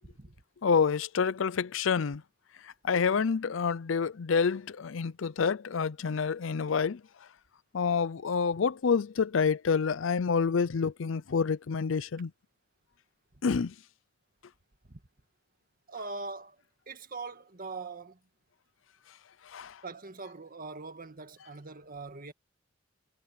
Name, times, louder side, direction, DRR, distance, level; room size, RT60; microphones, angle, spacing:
voice 1, 0.6-2.2 2.8-7.0 7.7-12.3 13.4-13.7 19.5-19.7, left 5 dB, 70° left, 0.5 m, -28 dB
voice 2, 15.9-16.5 16.9-18.2 19.8-22.3, right 3 dB, 45° right, 1.7 m, -42 dB
head